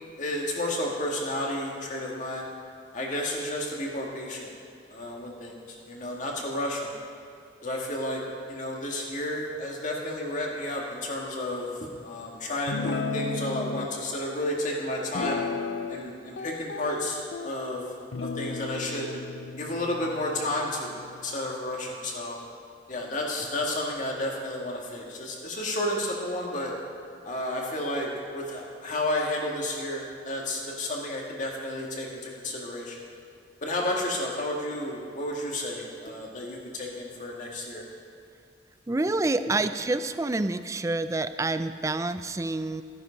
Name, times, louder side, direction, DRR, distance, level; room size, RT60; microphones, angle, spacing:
voice 1, 0.2-2.5 2.9-4.5 4.9-7.0 7.6-8.2 8.5-15.4 15.9-17.8 18.2-19.1 19.6-22.4 22.9-26.7 27.2-33.0 33.6-37.9, left 1 dB, 45° left, -1 dB, 2.0 m, -32 dB
Guitar, 12.7-13.9 15.1-16.1 16.4-17.5 18.1-21.6, left 4 dB, 75° left, 0.5 m, -34 dB
voice 2, 38.9-42.8, right 2 dB, 15° right, 11 dB, 0.4 m, -28 dB
14.5 x 9.8 x 5.2 m, 2.5 s
head